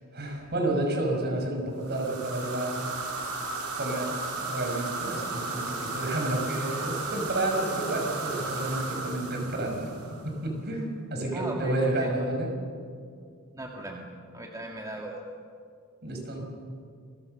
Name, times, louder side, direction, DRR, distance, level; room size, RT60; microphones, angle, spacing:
voice 1, 0.1-2.9 3.8-12.5 16.0-16.4, right 1 dB, 50° right, 2 dB, 5.6 m, -30 dB
sound 1, 1.8-10.4, right 3 dB, 85° right, 4.6 m, -34 dB
voice 2, 11.3-12.3 13.5-14.1 14.3-15.2, right 1 dB, 15° right, 0 dB, 2.0 m, -36 dB
27.5 x 22.5 x 6.6 m, 2.3 s
head